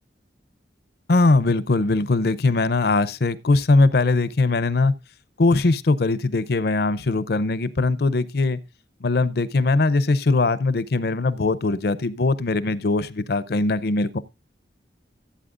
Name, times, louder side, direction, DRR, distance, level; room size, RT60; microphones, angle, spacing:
voice 1, 1.1-4.9 5.4-8.6 9.0-14.2, left 3 dB, 55° left, 0.6 m, -21 dB
15.0 x 8.4 x 2.5 m
head